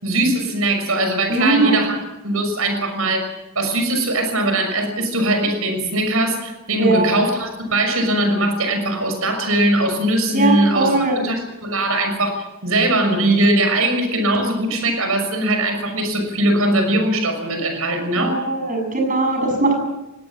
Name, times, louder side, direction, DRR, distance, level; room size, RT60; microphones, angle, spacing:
voice 1, 0.0-2.0 2.2-18.4, right 1 dB, 70° right, 6 dB, 6.3 m, -20 dB
voice 2, 1.3-1.8 6.8-7.1 10.3-11.2 18.2-19.7, right 3 dB, 35° right, 4 dB, 7.1 m, -19 dB
23.0 x 18.5 x 7.4 m, 1.0 s
head